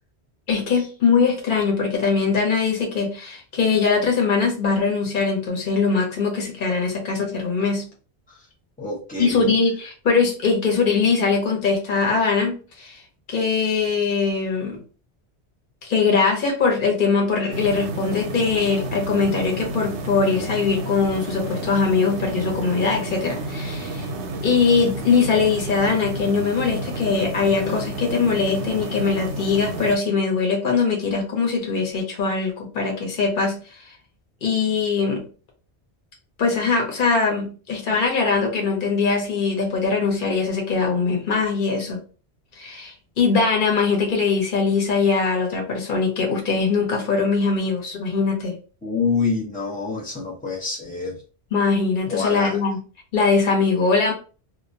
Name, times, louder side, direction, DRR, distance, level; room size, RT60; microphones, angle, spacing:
voice 1, 0.5-7.9 9.2-13.0 13.3-14.8 15.8-24.1 24.4-33.8 34.4-35.3 36.4-42.0 42.6-48.6 51.5-52.8 53.1-54.1, left 5 dB, 50° left, 0 dB, 0.9 m, -21 dB
voice 2, 8.8-9.5 48.8-51.2 52.1-52.6, left 4 dB, 10° left, -4 dB, 0.4 m, -26 dB
sound 1, 17.5-30.0, right 2 dB, 85° right, 0.9 m, -31 dB
2.3 x 2.1 x 2.6 m, 0.37 s
omnidirectional pair, 1.1 m